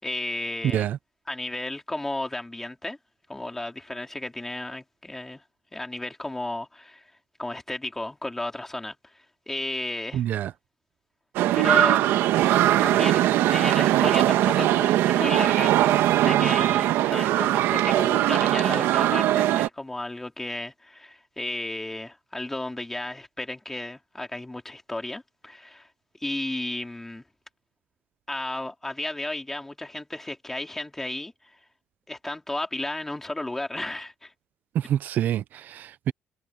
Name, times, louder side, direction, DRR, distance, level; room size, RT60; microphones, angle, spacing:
voice 1, 0.0-0.9 1.3-3.0 3.3-5.4 5.7-7.0 7.4-10.2 11.5-12.1 12.8-13.3 13.5-15.8 16.2-25.9 26.2-27.2 28.3-31.6 32.1-34.3, left 2 dB, 10° left, 3.1 m, -33 dB
voice 2, 10.1-10.5 34.7-36.1, right 11 dB, 50° right, 0.5 m, -27 dB
sound 1, 11.4-19.7, right 13 dB, 90° right, 1.3 m, -21 dB
cardioid pair, 170°, 4 cm